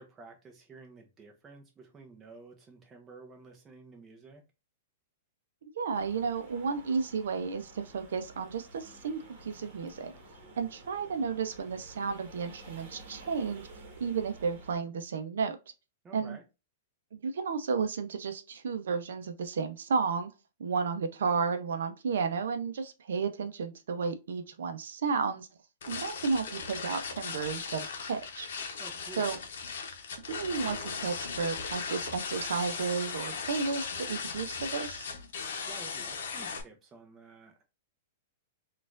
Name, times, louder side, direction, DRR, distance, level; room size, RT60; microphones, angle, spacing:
voice 1, 0.0-4.4 16.0-16.4 28.8-29.4 35.7-37.6, right 3 dB, 15° right, 0.7 m, -51 dB
voice 2, 5.6-10.1 10.6-13.7 14.0-15.6 16.1-16.4 17.1-20.3 20.6-25.5 25.9-28.5 29.2-29.4 30.3-35.1, right 5 dB, 90° right, 0.5 m, -32 dB
sound 1, 5.9-14.7, right 2 dB, 45° right, 1.2 m, -52 dB
sound 2, 25.8-36.6, left 5 dB, 70° left, 0.7 m, -38 dB
4.2 x 2.4 x 2.4 m
supercardioid pair, 165°, 0 cm